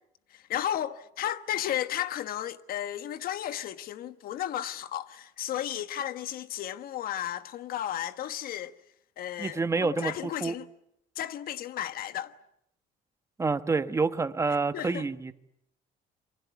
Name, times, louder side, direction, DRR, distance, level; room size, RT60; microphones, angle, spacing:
voice 1, 0.3-8.8 9.2-10.7 11.1-12.3 14.7-15.1, left 11 dB, 60° left, 1.3 m, -34 dB
voice 2, 9.4-10.1 10.4-10.5 13.4-15.3, right 4 dB, 15° right, 1.2 m, -27 dB
27.5 x 24.5 x 8.3 m
cardioid pair, 140°, 17 cm